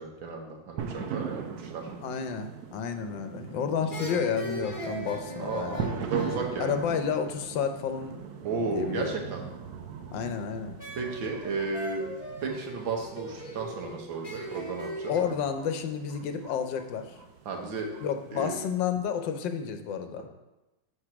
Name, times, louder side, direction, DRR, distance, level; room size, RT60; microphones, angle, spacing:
voice 1, 0.0-1.9 5.4-5.8 6.1-6.8 8.4-9.4 10.9-12.1 12.4-15.4 17.5-17.9 18.3-18.6, right 4 dB, 85° right, 1 dB, 1.9 m, -33 dB
sound 1, 0.8-18.8, right 6 dB, 70° right, 1.0 m, -40 dB
voice 2, 2.0-5.9 6.6-8.2 8.7-9.1 10.1-10.8 15.1-17.1 18.0-20.3, left 7 dB, 75° left, 7 dB, 1.3 m, -31 dB
sound 2, 3.1-3.5 3.9-7.6 10.8-15.2, equal, 20° left, 1.3 m, -40 dB
6.7 x 4.6 x 5.9 m, 1.0 s
omnidirectional pair, 2.1 m